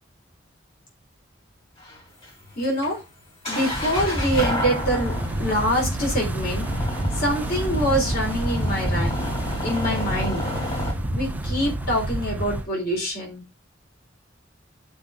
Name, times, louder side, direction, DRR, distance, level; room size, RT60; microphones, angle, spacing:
sound 1, 1.8-10.9, left 1 dB, 30° left, 3.1 m, -31 dB
voice 1, 2.6-3.0 3.5-5.1 5.4-6.7 7.1-9.3 9.6-10.5 11.1-13.4, equal, 55° left, -1 dB, 4.2 m, -25 dB
Wind, 3.5-12.7, equal, 10° right, 0.6 m, -29 dB
sound 2, 5.1-12.6, right 2 dB, 90° right, 0.7 m, -34 dB
10.5 x 5.3 x 3.6 m, 0.25 s
head